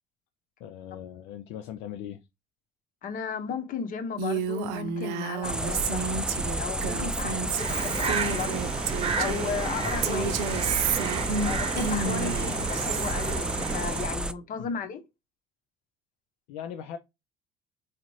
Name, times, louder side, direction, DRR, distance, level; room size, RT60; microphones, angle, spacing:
voice 1, 0.6-2.2 12.1-12.5 14.6-14.7 16.5-17.0, left 9 dB, 75° left, 0.5 m, -39 dB
voice 2, 3.0-6.0 6.6-8.9 9.2-10.4 11.4-15.0, left 6 dB, 55° left, 1.0 m, -35 dB
Female speech woman speaking, 4.2-9.6 10.0-13.1, right 5 dB, 80° right, 0.6 m, -31 dB
sound 1, 5.4-14.3, right 1 dB, 5° right, 0.4 m, -31 dB
sound 2, 7.6-14.1, right 6 dB, 35° right, 0.7 m, -32 dB
4.2 x 2.4 x 3.1 m
supercardioid pair, 75°, 16 cm